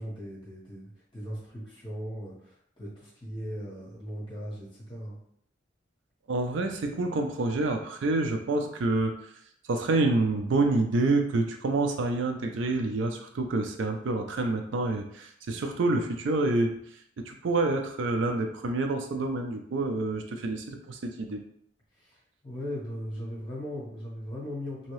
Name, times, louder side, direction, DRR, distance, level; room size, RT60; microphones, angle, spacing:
voice 1, 0.0-5.2 21.9-24.9, equal, 25° left, -7 dB, 1.3 m, -38 dB
voice 2, 6.3-9.1 9.7-16.7 17.2-21.4, right 2 dB, 70° right, 4 dB, 0.4 m, -27 dB
2.8 x 2.7 x 3.1 m, 0.68 s
head